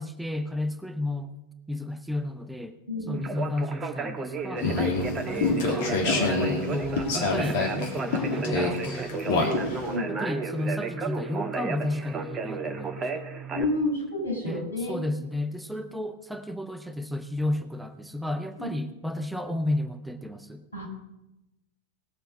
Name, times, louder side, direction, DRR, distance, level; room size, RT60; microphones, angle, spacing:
voice 1, 0.0-1.3 1.7-4.7 5.3-6.0 6.5-9.7 10.1-13.2 14.4-20.6, left 1 dB, ahead, 7 dB, 0.8 m, -33 dB
voice 2, 2.9-3.2 9.9-10.1 13.5-15.0 18.6-18.7 20.7-20.9, left 2 dB, 75° left, -1 dB, 5.8 m, -30 dB
Conversation, 3.1-13.6, right 4 dB, 20° right, 1.6 m, -33 dB
sound 1, 4.6-10.0, left 3 dB, 50° left, 2.7 m, -27 dB
19.0 x 6.8 x 6.5 m, 0.94 s
figure-of-eight pair, 90°, 0 cm